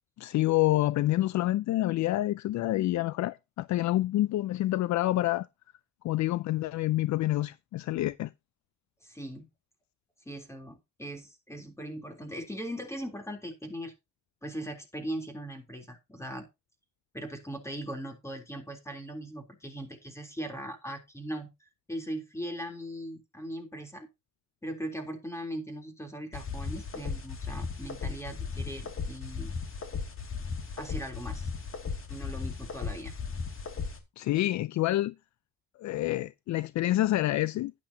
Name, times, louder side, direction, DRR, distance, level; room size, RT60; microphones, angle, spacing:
voice 1, 0.2-5.5 6.0-8.3 34.2-35.1 35.8-37.7, left 15 dB, 70° left, 0.5 m, -27 dB
voice 2, 9.0-9.5 10.3-13.9 14.4-16.5 17.1-21.5 21.9-24.1 24.6-29.5 30.8-31.5 32.1-33.1, right 1 dB, 10° left, 3.5 m, -39 dB
sound 1, 26.3-34.0, left 5 dB, 45° left, 2.5 m, -36 dB
11.5 x 10.0 x 2.8 m
cardioid pair, 90°, 30 cm